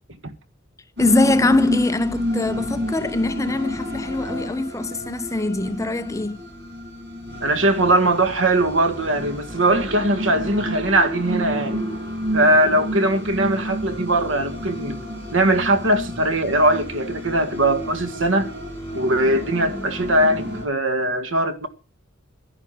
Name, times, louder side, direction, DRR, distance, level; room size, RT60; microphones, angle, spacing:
voice 1, 1.0-6.4, left 2 dB, 15° left, 0.8 m, -22 dB
sound 1, 1.0-20.6, equal, 60° right, 6.5 m, -30 dB
voice 2, 7.4-11.8 12.3-15.0 15.3-18.5 18.9-21.7, right 1 dB, 75° right, 1.8 m, -20 dB
11.0 x 10.5 x 7.6 m
head